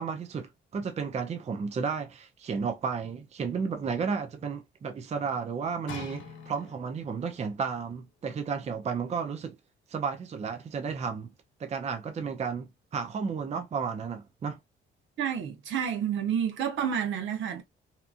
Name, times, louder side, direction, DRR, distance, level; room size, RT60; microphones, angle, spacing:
voice 1, 0.0-9.6 9.9-11.3 11.6-14.6, right 5 dB, 35° right, 0.5 m, -33 dB
sound 1, 5.9-7.1 7.9-8.0, left 4 dB, 80° left, 0.9 m, -43 dB
voice 2, 15.2-17.6, right 8 dB, 75° right, 0.8 m, -29 dB
2.8 x 2.5 x 2.4 m
cardioid pair, 90°, 20 cm